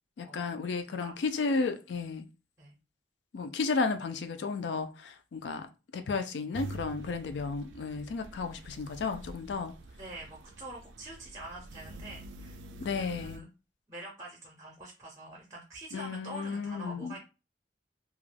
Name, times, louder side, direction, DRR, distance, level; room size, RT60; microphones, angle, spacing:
voice 1, 0.2-2.3 3.3-5.7 5.9-9.7 12.8-13.5 15.9-17.1, left 4 dB, 70° left, 0.4 m, -33 dB
sound 1, 6.5-13.4, right 1 dB, 80° right, 0.4 m, -46 dB
voice 2, 10.0-12.6 12.9-13.5 13.9-17.2, right 1 dB, 15° right, 0.5 m, -45 dB
2.3 x 2.1 x 3.2 m
head